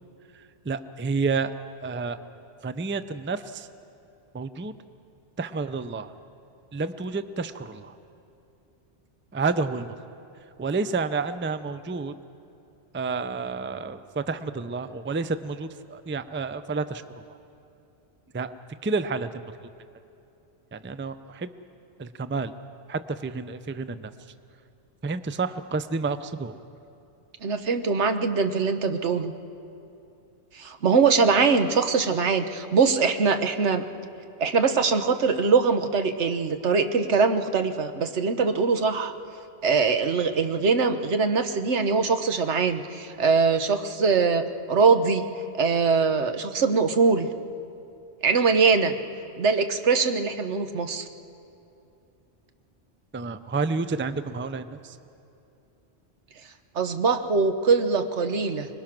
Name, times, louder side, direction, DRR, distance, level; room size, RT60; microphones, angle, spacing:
voice 1, 0.3-1.5 1.8-2.2 2.6-3.7 4.3-4.7 5.4-6.1 6.7-8.0 9.3-9.9 10.6-12.1 12.9-17.3 18.3-18.5 18.8-19.4 20.7-21.5 22.0-22.5 22.9-24.1 25.0-26.5 53.1-55.0, right 4 dB, 15° right, 11 dB, 0.4 m, -30 dB
voice 2, 27.4-29.3 30.5-33.8 34.4-39.1 39.6-45.3 45.5-47.3 48.2-49.0 49.4-51.0 56.7-58.7, right 5 dB, 80° right, 8 dB, 1.4 m, -22 dB
25.5 x 21.5 x 6.0 m, 2.8 s
omnidirectional pair, 1.2 m